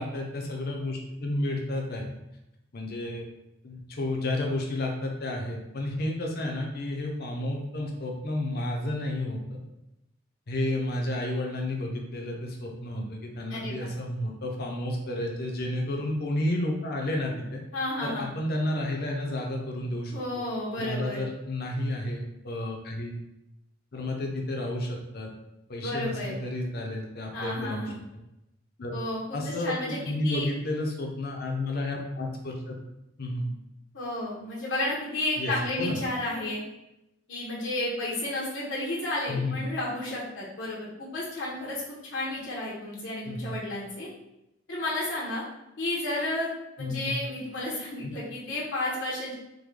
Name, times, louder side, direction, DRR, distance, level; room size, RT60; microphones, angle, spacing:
voice 1, 0.0-2.0 2.7-3.3 3.6-9.6 10.5-17.6 18.0-20.4 20.8-23.2 23.9-25.3 25.7-27.9 28.8-29.0 29.3-32.8 33.2-33.5 35.4-36.0 39.3-39.6 43.2-43.5 46.8-47.1 48.0-48.1, left 1 dB, 55° left, 1 dB, 0.6 m, -31 dB
voice 2, 13.5-13.9 17.7-18.3 20.1-21.2 25.8-26.3 27.3-28.0 28.9-30.0 30.2-30.5 33.9-36.6 37.3-44.1 44.7-45.4 45.8-46.5 46.8-49.3, left 1 dB, 85° left, -5 dB, 0.9 m, -32 dB
3.6 x 2.2 x 3.1 m, 0.89 s
head